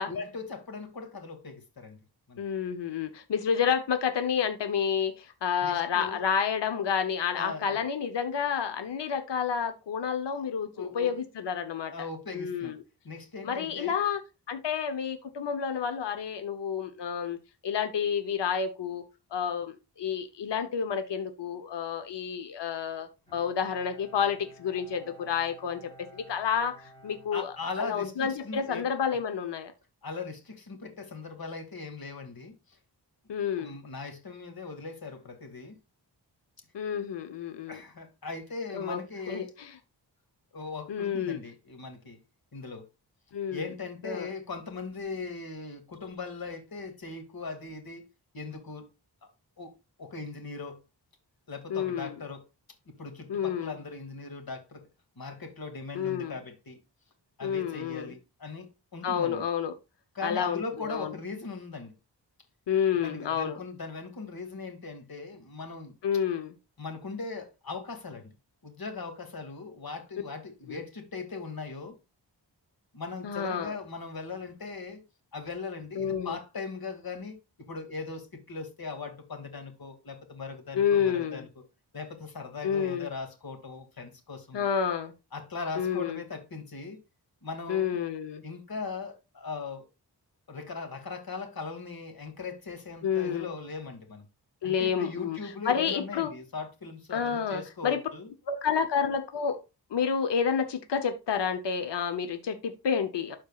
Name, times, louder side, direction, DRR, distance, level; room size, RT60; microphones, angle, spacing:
voice 1, 0.0-2.0 2.3-2.4 5.6-6.2 7.3-7.8 10.7-11.1 11.9-12.7 13.0-14.0 27.3-28.9 30.0-32.8 33.6-35.8 37.7-39.5 40.5-42.2 42.5-42.8 43.5-48.0 48.3-48.9 49.2-49.3 49.6-49.7 50.0-50.8 51.5-52.4 52.9-54.8 55.2-56.8 57.4-59.4 60.1-61.9 63.0-66.0 66.8-68.3 68.6-72.0 72.9-75.0 75.3-81.5 81.9-84.7 85.3-87.0 87.4-88.0 88.4-89.8 90.5-94.2 94.6-98.3, left 4 dB, 55° left, 2.2 m, -39 dB
voice 2, 2.4-11.9 12.3-12.8 13.4-14.2 14.5-17.4 17.6-19.0 19.3-29.7 33.3-33.8 36.7-37.8 38.7-39.0 39.3-39.8 40.9-41.4 43.3-43.7 44.0-44.3 51.7-52.2 53.3-53.8 55.9-56.3 57.4-58.1 59.0-59.7 60.2-61.1 62.7-63.6 66.0-66.5 70.7-70.8 73.2-73.7 76.0-76.4 80.7-81.4 82.6-83.1 84.5-85.1 85.8-86.2 87.7-88.4 93.0-93.5 94.6-96.3 97.1-98.0 98.5-99.6 99.9-103.4, left 7 dB, 75° left, 0.9 m, -29 dB
Bowed string instrument, 23.3-28.1, equal, 10° left, 3.9 m, -54 dB
12.5 x 4.5 x 2.4 m
cardioid pair, 60°, 42 cm